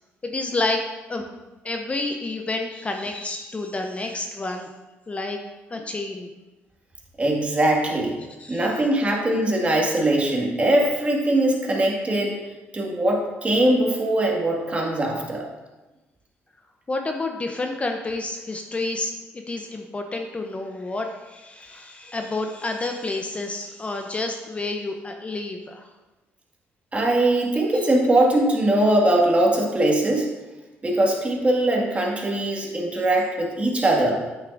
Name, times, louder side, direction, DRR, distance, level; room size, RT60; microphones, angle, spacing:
voice 1, 0.2-0.8 1.1-1.3 1.6-4.7 5.1-5.4 5.7-6.3 8.4-8.7 16.9-25.9 27.7-27.9 33.0-33.1, left 2 dB, 25° left, 4 dB, 0.6 m, -29 dB
voice 2, 7.2-8.2 8.5-12.4 12.7-15.5 26.9-30.3 30.8-34.2, right 1 dB, 25° right, -1 dB, 1.8 m, -21 dB
8.4 x 6.3 x 2.5 m, 1.1 s
cardioid pair, 80°, 5 cm